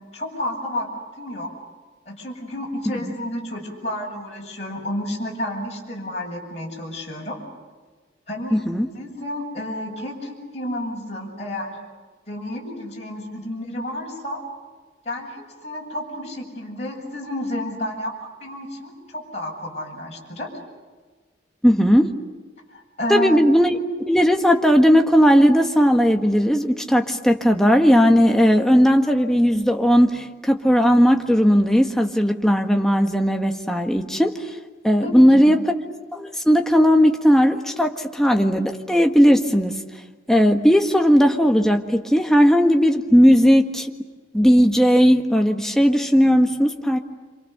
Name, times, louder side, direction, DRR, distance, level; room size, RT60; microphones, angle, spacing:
voice 1, 0.1-0.9 1.2-1.5 2.1-7.4 8.3-8.6 8.9-11.8 12.3-14.4 15.0-18.1 18.4-20.5 22.7-23.4 35.0-35.6, left 1 dB, 35° left, -2 dB, 7.5 m, -31 dB
voice 2, 8.5-8.9 21.6-22.1 23.1-23.8 24.1-34.5 34.8-35.6 36.1-39.8 40.3-43.9 44.3-47.0, equal, 5° left, 3 dB, 1.6 m, -17 dB
28.5 x 27.0 x 6.8 m, 1.4 s
head